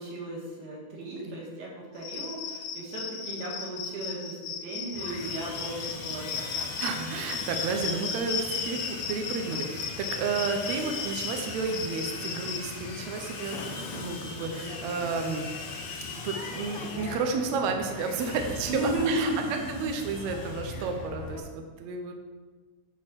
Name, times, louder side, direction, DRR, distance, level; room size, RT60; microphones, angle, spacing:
voice 1, 0.0-6.7 18.7-19.4 20.7-20.9, right 2 dB, 60° right, -3 dB, 3.1 m, -35 dB
Cricket, 2.0-12.6, left 6 dB, 70° left, 1.8 m, -36 dB
Sawing, 4.9-21.4, left 4 dB, 85° left, 1.2 m, -39 dB
voice 2, 6.8-15.5 16.2-19.3 19.7-22.1, right 4 dB, 80° right, 4 dB, 1.6 m, -32 dB
9.6 x 4.3 x 6.2 m, 1.4 s
omnidirectional pair, 4.1 m